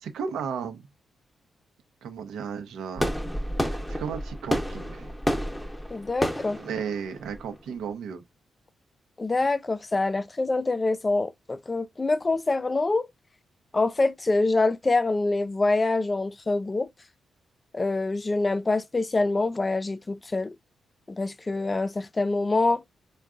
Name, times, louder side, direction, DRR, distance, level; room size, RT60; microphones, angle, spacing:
voice 1, 0.0-0.9 2.0-3.1 3.7-5.1 6.6-8.2, right 6 dB, 85° right, 0.6 m, -34 dB
sound 1, 3.0-7.9, equal, 10° left, 0.8 m, -30 dB
voice 2, 5.9-6.6 9.2-13.1 13.7-16.9 17.7-20.6 21.1-22.8, left 3 dB, 30° left, 0.3 m, -25 dB
3.5 x 2.2 x 2.4 m
supercardioid pair, 55°, 0 cm